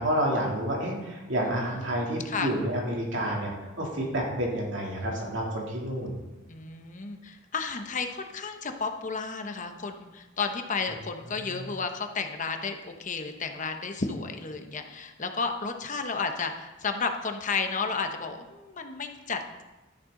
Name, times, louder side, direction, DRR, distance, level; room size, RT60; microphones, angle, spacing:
voice 1, 0.0-3.5 3.8-6.2 11.5-11.6, right 1 dB, 65° right, -2 dB, 2.9 m, -29 dB
voice 2, 1.4-2.5 6.5-19.6, left 4 dB, 40° left, 6 dB, 0.9 m, -33 dB
12.5 x 10.5 x 3.8 m, 1.1 s
head